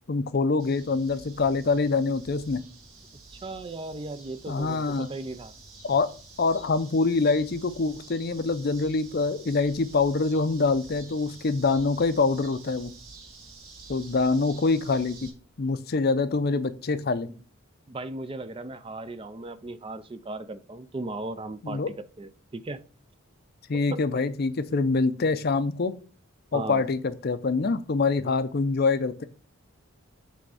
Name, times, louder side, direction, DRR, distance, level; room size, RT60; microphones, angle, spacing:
voice 1, 0.1-2.6 4.5-5.1 5.8-6.1 6.4-12.9 13.9-15.3 15.6-17.3 21.6-21.9 23.7-26.0 26.5-29.2, left 3 dB, 45° left, 0.5 m, -25 dB
sound 1, 0.6-15.3, right 3 dB, 80° right, 2.1 m, -49 dB
voice 2, 3.3-5.5 17.3-17.4 17.9-22.8 23.9-24.0 26.5-26.8, right 2 dB, 25° right, 0.4 m, -37 dB
7.5 x 3.5 x 4.8 m
head